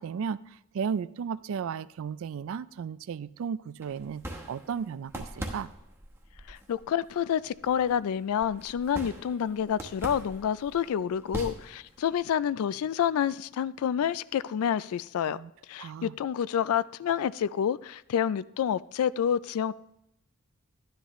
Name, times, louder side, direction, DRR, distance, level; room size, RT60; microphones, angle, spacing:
voice 1, 0.0-5.7 15.3-15.5 15.8-16.2, right 6 dB, 65° right, 0.3 m, -35 dB
sound 1, 3.8-12.2, right 1 dB, 10° right, 1.0 m, -43 dB
voice 2, 6.5-15.4 15.7-19.7, left 8 dB, 80° left, 0.3 m, -28 dB
12.5 x 10.0 x 3.1 m
head